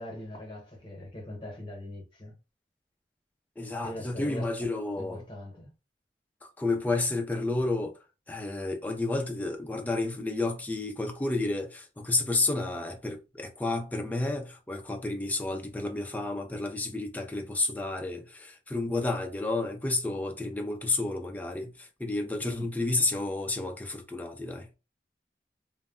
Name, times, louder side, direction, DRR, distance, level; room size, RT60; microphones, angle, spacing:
voice 1, 0.0-2.3 3.8-4.4 4.9-5.7 22.4-22.7, left 1 dB, 30° left, 0.9 m, -41 dB
voice 2, 3.6-5.2 6.6-8.0 8.3-24.7, left 2 dB, 10° left, 0.3 m, -31 dB
2.1 x 2.1 x 3.5 m
head